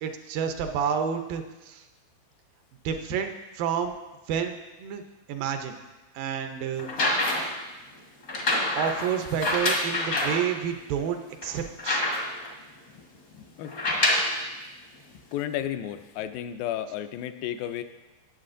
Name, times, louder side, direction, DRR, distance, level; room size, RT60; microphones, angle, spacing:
voice 1, 0.0-1.8 2.9-4.0 4.3-5.0 5.3-5.8 6.1-6.9 7.4-7.5 8.7-12.1, right 8 dB, 80° right, 6 dB, 2.4 m, -29 dB
sound 1, 6.8-7.6 8.3-10.4 11.0-11.1 11.4-12.5 13.6-14.4 15.3-15.4, left 1 dB, 65° left, 0.8 m, -26 dB
voice 2, 13.3-14.3 15.1-17.8, left 11 dB, 90° left, 9 dB, 2.3 m, -34 dB
18.5 x 7.4 x 2.6 m, 1.1 s
omnidirectional pair, 4.0 m